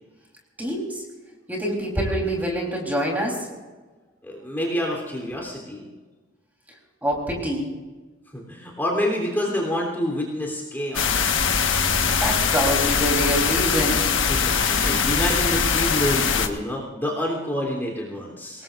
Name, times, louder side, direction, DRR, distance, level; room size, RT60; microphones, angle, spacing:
voice 1, 0.6-1.0 1.5-3.5 7.0-7.7 12.2-14.0 18.5-18.6, equal, 10° right, -2 dB, 3.8 m, -25 dB
voice 2, 4.2-5.9 8.3-11.6 14.3-18.6, equal, 10° left, -3 dB, 3.4 m, -28 dB
sound 1, 10.9-16.5, left 6 dB, 75° left, 1.5 m, -22 dB
26.0 x 20.0 x 2.6 m, 1.3 s
head